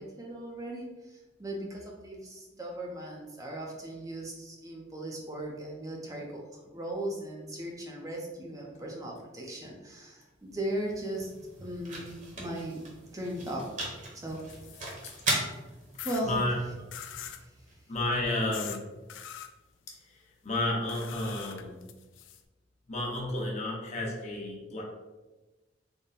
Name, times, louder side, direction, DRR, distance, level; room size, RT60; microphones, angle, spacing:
voice 1, 0.0-11.3 11.6-13.7 14.1-14.5 14.7-14.8 16.0-16.5 17.2-17.5, right 1 dB, 20° right, -1 dB, 0.5 m, -38 dB
sound 1, 10.3-18.4, right 2 dB, 45° right, 1.0 m, -39 dB
sound 2, 14.3-15.4 16.0-16.2 16.9-17.4 18.5-18.8 19.1-19.5 20.9-22.4, left 9 dB, 90° left, 0.3 m, -43 dB
voice 2, 16.2-16.6 17.9-18.8 20.0-21.8 22.9-24.8, left 1 dB, 40° left, -3 dB, 0.8 m, -31 dB
3.7 x 2.1 x 4.0 m, 1.1 s
head